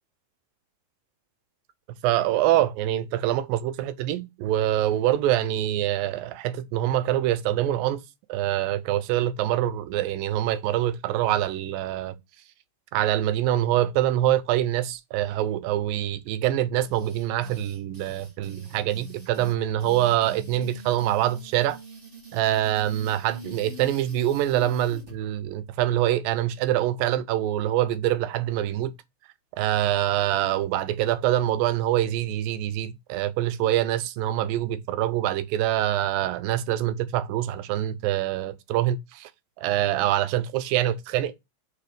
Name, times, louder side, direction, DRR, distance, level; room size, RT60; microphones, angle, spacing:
voice 1, 2.0-8.0 8.3-12.1 12.9-21.8 22.3-28.9 29.6-39.3 39.6-41.3, right 13 dB, 85° right, 2.4 m, -25 dB
sound 1, 16.8-25.1, right 3 dB, 55° right, 0.8 m, -45 dB
4.8 x 4.7 x 5.1 m
omnidirectional pair, 4.0 m